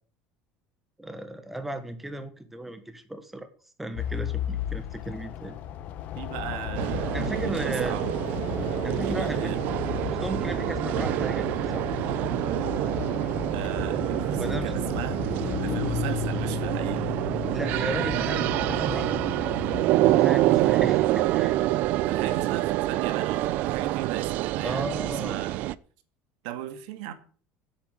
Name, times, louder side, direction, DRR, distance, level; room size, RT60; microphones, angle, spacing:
voice 1, 1.0-3.5 3.8-5.6 7.1-8.1 8.8-9.5 10.1-11.5 11.7-11.9 14.4-14.7 17.5-19.5 20.0-21.6 24.6-25.4, right 1 dB, 5° right, 1.3 m, -35 dB
sound 1, 3.9-19.8, left 10 dB, 40° left, 1.1 m, -34 dB
voice 2, 6.2-8.1 9.1-9.6 13.5-17.1 22.1-25.7 26.4-27.1, right 11 dB, 75° right, 2.0 m, -38 dB
sound 2, 6.7-25.7, right 16 dB, 45° right, 0.5 m, -26 dB
9.9 x 8.4 x 8.4 m
cardioid pair, 175°, 4 cm